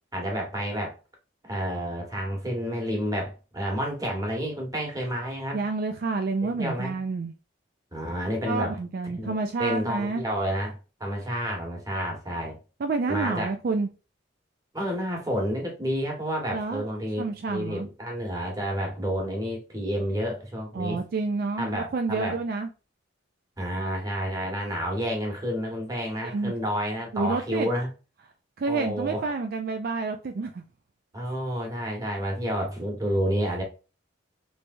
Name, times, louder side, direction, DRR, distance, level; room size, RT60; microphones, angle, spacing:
voice 1, 0.1-0.9 1.4-5.6 6.5-6.9 7.9-8.8 9.1-12.6 13.1-13.5 14.7-21.0 21.6-22.4 23.6-27.9 28.7-29.3 31.1-33.6, equal, 20° right, 1.3 m, -30 dB
voice 2, 5.5-7.3 8.5-10.2 12.8-13.9 16.5-16.9 17.2-17.9 20.7-22.7 26.2-26.5 27.1-27.7 28.6-30.6, right 3 dB, 50° right, 0.4 m, -29 dB
3.3 x 3.2 x 2.5 m
head